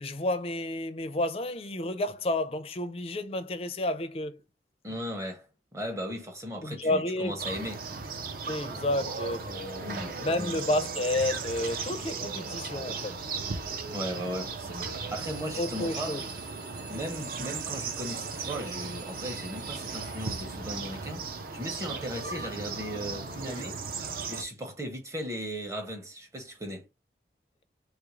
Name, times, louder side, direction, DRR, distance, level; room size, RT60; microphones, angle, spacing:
voice 1, 0.0-4.4 6.6-7.4 8.5-13.2 15.6-16.3 23.4-23.7, left 1 dB, 35° left, 0.4 m, -31 dB
voice 2, 4.8-7.9 9.8-10.5 13.9-16.2 16.9-21.2 21.5-23.8 24.3-26.9, equal, 15° right, 0.7 m, -37 dB
sound 1, 7.4-24.4, right 4 dB, 50° right, 0.4 m, -36 dB
sound 2, 15.2-20.4, right 5 dB, 75° right, 1.1 m, -49 dB
3.4 x 2.4 x 3.0 m
head